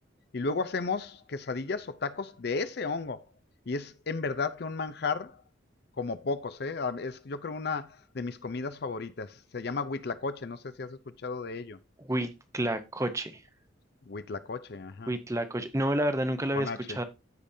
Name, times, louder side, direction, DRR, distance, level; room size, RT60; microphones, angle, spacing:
voice 1, 0.3-3.2 3.7-5.4 6.0-11.8 14.1-15.1 16.5-17.0, left 4 dB, 55° left, 0.5 m, -34 dB
voice 2, 12.0-13.4 15.1-17.0, right 1 dB, 15° right, 0.8 m, -30 dB
14.0 x 5.1 x 2.7 m
head